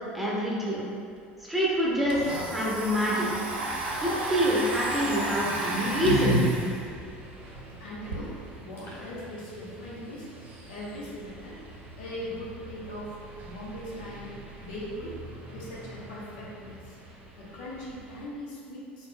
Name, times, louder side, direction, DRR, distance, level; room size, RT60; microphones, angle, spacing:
voice 1, 0.1-0.8 1.4-2.2 2.5-3.3 4.0-6.4, equal, ahead, -7 dB, 1.2 m, -26 dB
Domestic sounds home sounds, 1.2-1.3 1.5-8.2, right 2 dB, 80° right, 0.6 m, -34 dB
sound 1, 1.9-18.2, right 2 dB, 30° right, 1.1 m, -47 dB
sound 2, 3.9-4.4 5.3-6.4 6.7-6.8 8.5-8.6 8.8-9.2, left 1 dB, 40° left, 1.3 m, -28 dB
voice 2, 7.7-10.3 10.7-11.6 12.0-14.3 14.6-15.2 15.5-17.0 17.4-19.1, left 1 dB, 65° left, -6 dB, 1.0 m, -40 dB
4.5 x 4.2 x 2.2 m, 2.3 s
hypercardioid pair, 70°, 6 cm